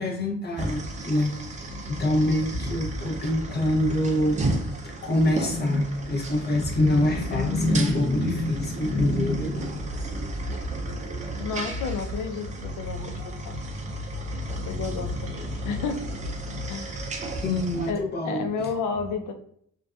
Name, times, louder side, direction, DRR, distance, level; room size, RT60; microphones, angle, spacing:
voice 1, 0.0-4.4 4.7-9.9 11.0-11.1 17.4-18.7, left 1 dB, 35° left, 0 dB, 0.7 m, -25 dB
sound 1, 0.6-17.9, right 1 dB, 25° right, 0.4 m, -33 dB
voice 2, 1.7-2.1 11.4-13.1 13.4-13.6 14.7-16.0 16.7-17.3 17.9-19.3, left 5 dB, 80° left, 6 dB, 0.5 m, -32 dB
2.6 x 2.2 x 2.3 m, 0.66 s
cardioid pair, 90°, 30 cm